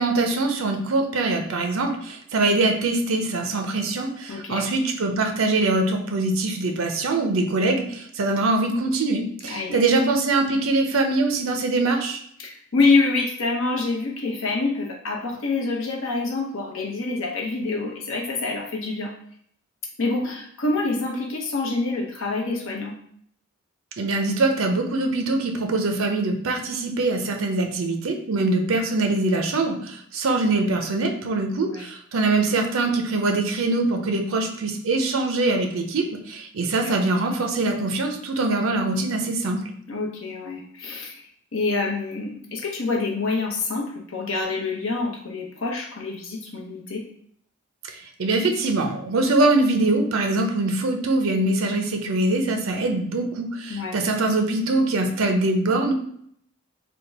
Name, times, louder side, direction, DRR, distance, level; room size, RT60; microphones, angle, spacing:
voice 1, 0.0-12.2 24.0-39.6 47.8-55.9, right 2 dB, 80° right, 4 dB, 0.6 m, -23 dB
voice 2, 4.3-4.7 9.4-9.8 12.4-19.1 20.0-23.0 31.5-31.8 36.8-36.9 39.9-41.2 41.5-47.0 53.7-54.0, left 3 dB, 75° left, 0 dB, 0.8 m, -26 dB
3.5 x 2.2 x 4.1 m, 0.65 s
head